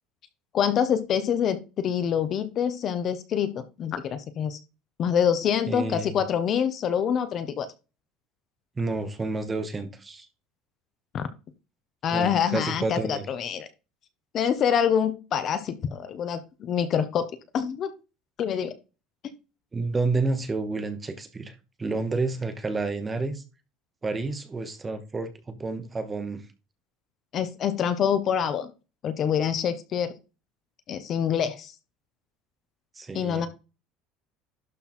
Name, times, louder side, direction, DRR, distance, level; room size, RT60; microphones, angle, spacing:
voice 1, 0.5-4.6 5.0-7.7 11.1-11.3 12.0-13.7 14.3-17.3 17.5-17.9 18.4-18.7 19.2-19.3 27.3-28.7 29.0-30.1 30.9-31.7 33.1-33.5, left 8 dB, 30° left, 0.7 m, -26 dB
voice 2, 5.7-6.2 8.8-10.3 12.1-13.3 19.7-21.5 21.8-23.4 24.0-26.4 33.0-33.5, right 3 dB, 10° right, 0.9 m, -30 dB
11.5 x 4.0 x 4.3 m
cardioid pair, 180°, 0 cm